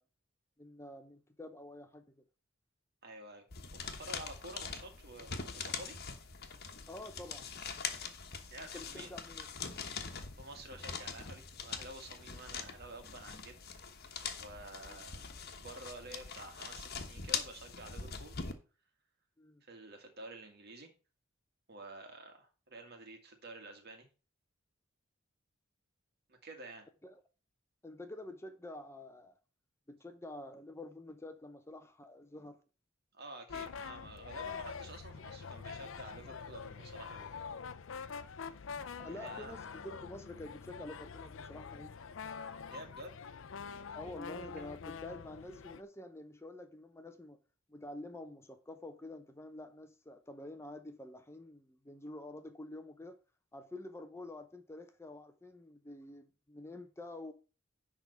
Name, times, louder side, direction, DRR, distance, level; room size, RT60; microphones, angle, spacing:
voice 1, 0.6-2.2 6.9-7.5 8.7-9.5 14.9-15.0 19.4-19.6 27.0-27.2 27.8-29.3 29.9-32.6 38.4-38.5 39.0-41.9 43.9-47.4 47.7-53.2 53.5-57.3, left 1 dB, 15° left, 0.7 m, -48 dB
voice 2, 3.0-3.5 3.7-6.0 8.5-9.1 10.1-13.6 14.4-18.3 19.6-20.9 21.7-24.1 26.3-26.9 33.1-37.4 39.1-39.5 42.7-43.2, right 2 dB, 55° right, 2.0 m, -50 dB
sound 1, 3.5-18.5, left 6 dB, 50° left, 1.2 m, -43 dB
sound 2, 33.5-45.8, left 6 dB, 70° left, 0.6 m, -45 dB
10.5 x 3.7 x 6.8 m
head